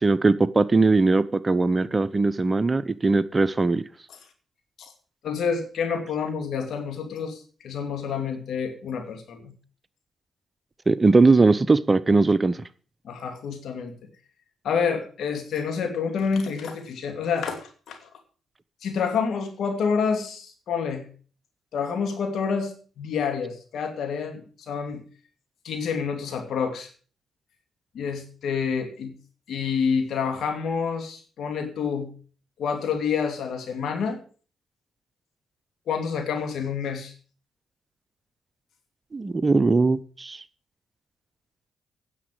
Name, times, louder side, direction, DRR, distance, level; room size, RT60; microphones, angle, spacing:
voice 1, 0.0-3.8 10.9-12.6 39.1-40.4, right 3 dB, 30° right, 0.8 m, -20 dB
voice 2, 5.2-9.5 13.0-13.9 14.6-18.0 18.8-21.0 21.7-25.0 25.6-26.9 27.9-29.1 29.5-32.1 32.6-34.2 35.9-37.1, left 6 dB, 65° left, 2.6 m, -28 dB
10.0 x 7.3 x 7.7 m
hypercardioid pair, 45°, 0 cm